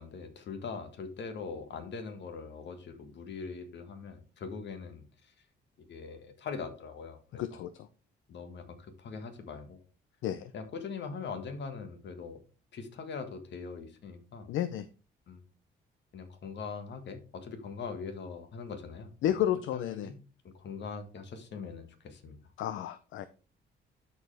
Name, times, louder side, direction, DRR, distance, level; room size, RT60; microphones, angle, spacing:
voice 1, 0.0-5.3 5.8-7.6 8.3-9.8 10.5-12.4 12.7-14.5 15.3-15.4 16.1-19.1 19.7-20.2 20.4-22.4, left 5 dB, 65° left, 8 dB, 1.6 m, -42 dB
voice 2, 7.3-7.9 10.2-10.5 14.5-14.9 19.2-20.1 22.6-23.3, left 11 dB, 80° left, 13 dB, 0.5 m, -32 dB
12.5 x 4.7 x 3.3 m, 0.36 s
cardioid pair, 90°, 20 cm